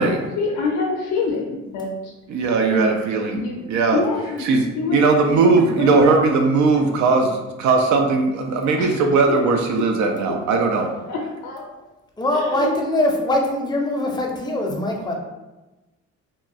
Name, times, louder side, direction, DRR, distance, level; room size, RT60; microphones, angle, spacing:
voice 1, 0.0-2.1 2.7-3.0 3.3-5.0 5.3-6.1 8.8-9.0 9.3-9.4 9.8-9.9 10.3-10.4 11.1-11.7 12.3-12.7, left 4 dB, 70° left, -1 dB, 0.5 m, -26 dB
voice 2, 2.3-3.4 3.7-4.0 4.4-4.6 4.9-10.9, right 4 dB, 70° right, 3 dB, 0.4 m, -18 dB
voice 3, 12.2-15.1, left 1 dB, 15° left, 0 dB, 0.5 m, -22 dB
2.9 x 2.3 x 2.5 m, 1.1 s
cardioid pair, 90°, 30 cm